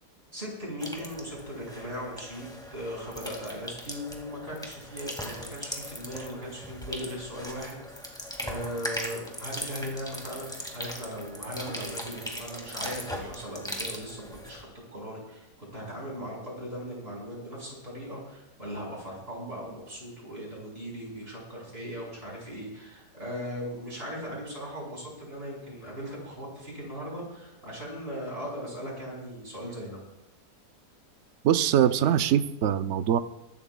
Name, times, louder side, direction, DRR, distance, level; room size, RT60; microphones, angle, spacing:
voice 1, 0.3-14.7 14.9-30.0, equal, 35° right, -2 dB, 4.8 m, -38 dB
sound 1, 0.8-14.6, equal, ahead, 1.9 m, -39 dB
voice 2, 31.4-33.2, right 10 dB, 70° right, 11 dB, 0.7 m, -23 dB
23.0 x 12.0 x 2.3 m, 0.89 s
omnidirectional pair, 1.8 m